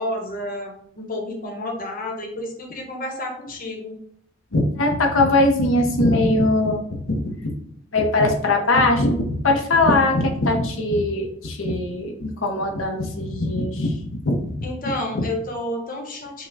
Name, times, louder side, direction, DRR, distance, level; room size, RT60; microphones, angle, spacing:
voice 1, 0.0-4.0 14.6-16.5, left 1 dB, 45° left, 1 dB, 1.1 m, -30 dB
voice 2, 4.5-7.3 7.9-14.5, left 2 dB, 75° left, 2 dB, 0.9 m, -21 dB
5.6 x 2.3 x 3.5 m, 0.66 s
head